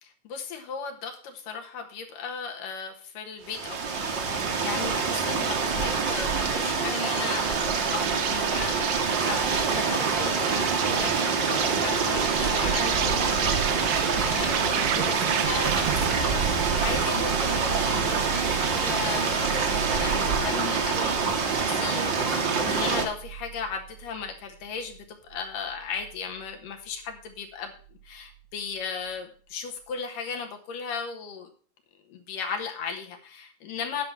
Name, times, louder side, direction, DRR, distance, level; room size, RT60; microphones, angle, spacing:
voice 1, 0.0-3.8 4.2-11.2 11.4-27.7 28.0-31.5 32.1-34.0, left 6 dB, 75° left, 3 dB, 3.1 m, -36 dB
sound 1, 3.5-23.1, right 5 dB, 50° right, 1.5 m, -26 dB
Insect, 7.0-16.3, right 9 dB, 70° right, 2.1 m, -32 dB
sound 2, 15.6-25.0 25.3-26.6 26.9-27.4 27.8-28.4, right 7 dB, 90° right, 2.7 m, -37 dB
9.7 x 6.1 x 7.2 m, 0.43 s
omnidirectional pair, 4.0 m